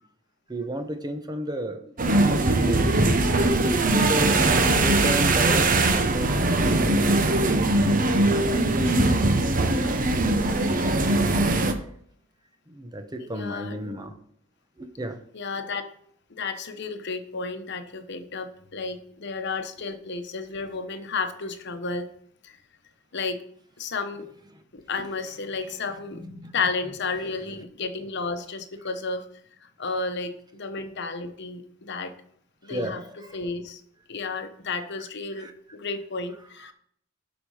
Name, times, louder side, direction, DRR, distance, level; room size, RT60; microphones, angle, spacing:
voice 1, 0.5-1.9 2.4-3.1 3.9-4.4 4.8-8.5 12.7-14.1 14.8-15.2 25.0-25.1 25.5-25.7 26.1-26.5 32.7-33.4 35.4-35.5, right 1 dB, 20° right, 7 dB, 1.0 m, -33 dB
sound 1, 2.0-11.7, right 2 dB, 45° right, 0.9 m, -21 dB
voice 2, 13.2-14.0 15.3-15.9 16.3-22.1 22.4-22.5 23.1-23.4 23.8-24.3 24.7-26.2 26.5-29.3 29.8-32.1 32.6-33.0 33.3-33.8 34.1-36.7, left 4 dB, 60° left, 8 dB, 1.0 m, -32 dB
12.0 x 5.2 x 5.0 m, 0.65 s
head